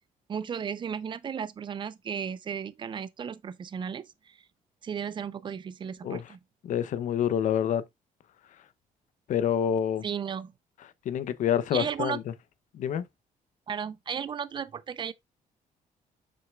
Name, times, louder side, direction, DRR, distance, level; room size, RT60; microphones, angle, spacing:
voice 1, 0.3-4.4 4.8-6.4 10.0-10.5 11.7-12.2 13.7-15.1, right 7 dB, 35° right, 0.6 m, -34 dB
voice 2, 6.6-7.8 9.3-10.0 11.0-12.2 12.7-13.0, left 9 dB, 65° left, 0.7 m, -27 dB
7.7 x 6.3 x 2.3 m
cardioid pair, 160°, 14 cm